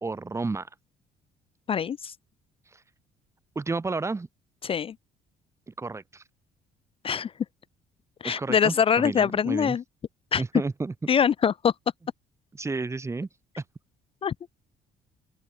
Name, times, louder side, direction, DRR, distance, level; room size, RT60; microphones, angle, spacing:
voice 1, 0.0-0.7 3.5-4.3 5.7-6.2 8.2-9.8 10.4-10.9 12.5-13.3 13.6-13.7, right 3 dB, 15° right, 1.4 m, -31 dB
voice 2, 1.7-2.1 4.6-4.9 7.0-7.3 8.2-9.8 10.3-10.4 11.1-11.7 14.2-14.3, left 7 dB, 35° left, 0.4 m, -23 dB
open air
cardioid pair, 110°, 17 cm